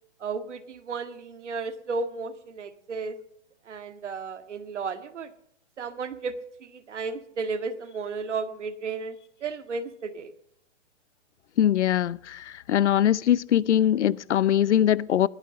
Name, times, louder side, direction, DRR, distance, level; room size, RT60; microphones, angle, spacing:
voice 1, 0.2-3.2 3.7-5.3 5.8-6.4 6.6-10.3, right 4 dB, 80° right, 2.0 m, -33 dB
voice 2, 11.6-15.3, left 11 dB, 75° left, 0.7 m, -22 dB
21.0 x 9.2 x 6.6 m
hypercardioid pair, 165°, 35 cm